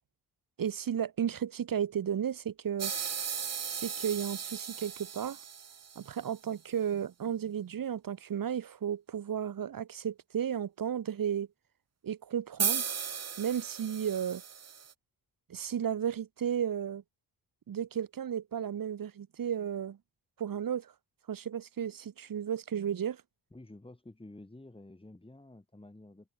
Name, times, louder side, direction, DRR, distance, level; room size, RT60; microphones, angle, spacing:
voice 1, 0.6-2.9 3.7-5.4 5.9-11.5 12.0-12.8 13.4-14.4 15.5-17.0 17.7-20.0 20.4-20.9 21.3-23.2, right 9 dB, 60° right, 1.6 m, -33 dB
sound 1, 2.8-6.3 12.6-14.9, right 7 dB, 40° right, 1.2 m, -36 dB
voice 2, 23.5-26.3, left 2 dB, 15° left, 4.5 m, -51 dB
open air
cardioid pair, 85°, 38 cm